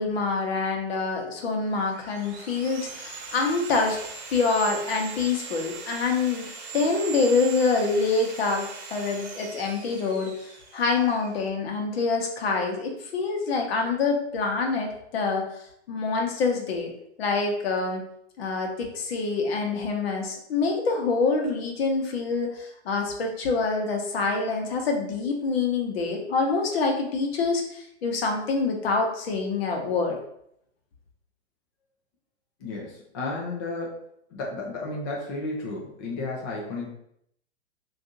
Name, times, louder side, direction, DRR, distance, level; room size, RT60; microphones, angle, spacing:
voice 1, 0.0-4.0 4.3-6.5 6.7-15.5 15.9-16.9 17.2-18.0 18.4-30.2, left 4 dB, 60° left, 2 dB, 0.9 m, -26 dB
Sawing, 1.6-11.5, right 6 dB, 50° right, 0.9 m, -40 dB
voice 2, 32.6-34.0 34.3-36.9, left 2 dB, 25° left, -2 dB, 0.3 m, -33 dB
2.6 x 2.5 x 3.7 m, 0.73 s
hypercardioid pair, 135°, 35 cm